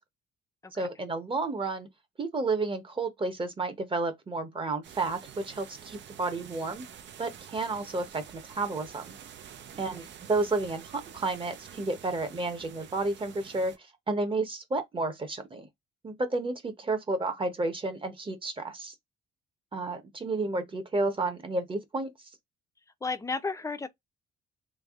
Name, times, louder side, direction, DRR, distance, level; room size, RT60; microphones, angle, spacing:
voice 1, 0.7-1.9 2.2-6.8 7.2-9.2 9.8-13.7 14.1-15.7 16.0-18.9 19.7-22.1, right 3 dB, 25° right, 0.9 m, -31 dB
sound 1, 4.8-13.8, right 9 dB, 60° right, 0.6 m, -48 dB
voice 2, 23.0-23.9, left 4 dB, 15° left, 0.6 m, -33 dB
3.4 x 2.3 x 3.5 m
cardioid pair, 115°, 21 cm